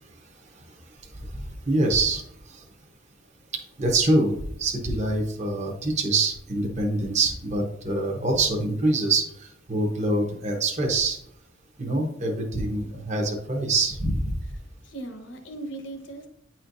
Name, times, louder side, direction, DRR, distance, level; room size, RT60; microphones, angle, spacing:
voice 1, 1.3-2.6 3.8-11.2 11.8-14.4, right 2 dB, 35° right, 1 dB, 1.0 m, -25 dB
voice 2, 14.4-16.3, right 2 dB, 60° left, 5 dB, 1.2 m, -39 dB
9.5 x 4.4 x 2.6 m, 0.73 s
head